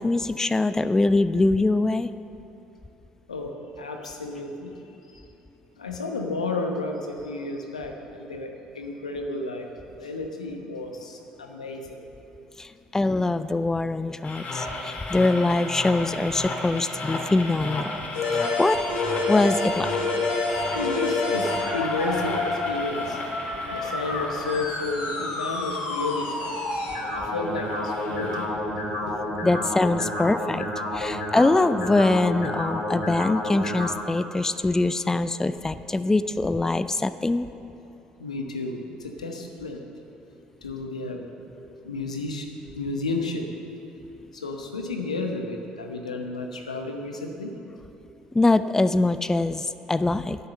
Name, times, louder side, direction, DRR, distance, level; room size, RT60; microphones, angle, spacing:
voice 1, 0.0-2.1 12.6-18.0 18.3-18.8 19.3-19.9 29.4-30.6 30.9-37.5 48.3-50.4, left 2 dB, 15° left, 13 dB, 0.4 m, -23 dB
voice 2, 3.3-5.2 5.8-9.7 10.0-12.0 20.3-29.5 38.2-39.8 40.6-41.2 41.8-42.5 42.8-43.7 44.3-47.5, left 2 dB, 90° left, 3 dB, 0.9 m, -32 dB
sound 1, 14.2-28.5, left 2 dB, 45° left, 2.2 m, -36 dB
sound 2, 18.1-33.9, left 2 dB, 70° left, 2.7 m, -29 dB
10.5 x 9.6 x 6.6 m, 2.9 s
hypercardioid pair, 55°, 4 cm